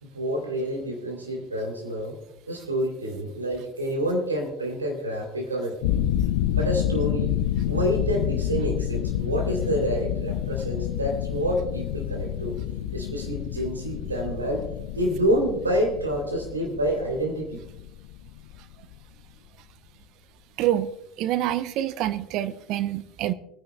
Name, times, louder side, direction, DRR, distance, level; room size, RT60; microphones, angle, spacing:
voice 1, 0.0-2.2 2.5-6.0 6.5-7.4 7.7-12.5 12.9-14.6 14.9-17.6, equal, 90° right, 1 dB, 3.0 m, -28 dB
sound 1, 5.8-18.9, left 11 dB, 70° left, 0.4 m, -28 dB
voice 2, 20.6-20.9 21.2-23.3, right 13 dB, 55° right, 14 dB, 0.6 m, -26 dB
24.5 x 10.0 x 2.2 m, 0.88 s
figure-of-eight pair, 70°, 0 cm